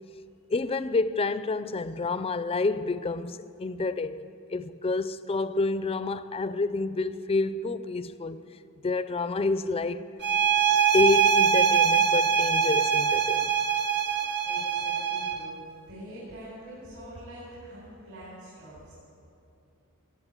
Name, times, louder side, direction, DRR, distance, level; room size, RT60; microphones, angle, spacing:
voice 1, 0.5-8.4 8.8-10.0 10.9-13.6, left 3 dB, 25° left, 0.4 m, -28 dB
sound 1, 10.2-15.5, right 7 dB, 50° right, 1.0 m, -23 dB
voice 2, 14.2-15.6 15.9-18.9, equal, 65° right, 4.6 m, -45 dB
16.0 x 8.2 x 8.8 m
head